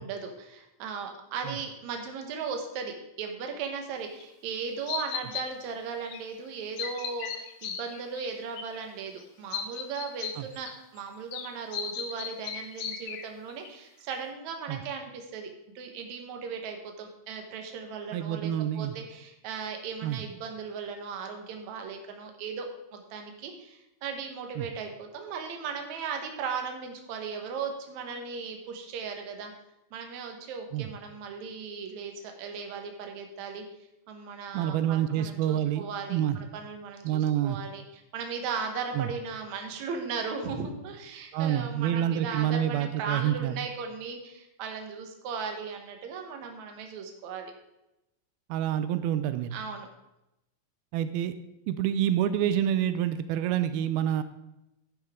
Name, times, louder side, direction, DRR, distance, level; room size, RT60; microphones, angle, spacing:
voice 1, 0.0-15.5 15.8-22.7 22.9-29.5 29.9-33.6 34.1-37.8 38.1-47.5 49.5-49.9, right 5 dB, 60° right, 4 dB, 2.3 m, -37 dB
sound 1, 4.2-4.3 4.9-5.4 6.0-6.2 6.5-8.3 8.5-8.8 9.2-9.3 9.5-11.0 11.3-13.7 14.1-14.2, left 8 dB, 70° left, 1.6 m, -36 dB
voice 2, 18.1-18.9 20.0-20.2 24.6-24.7 30.7-30.9 34.5-35.8 36.1-36.4 37.0-37.6 39.0-39.1 41.3-43.6 48.5-49.5 50.9-51.3 51.7-54.2, right 11 dB, 90° right, 12 dB, 2.5 m, -27 dB
10.5 x 10.5 x 3.7 m, 0.90 s
omnidirectional pair, 4.3 m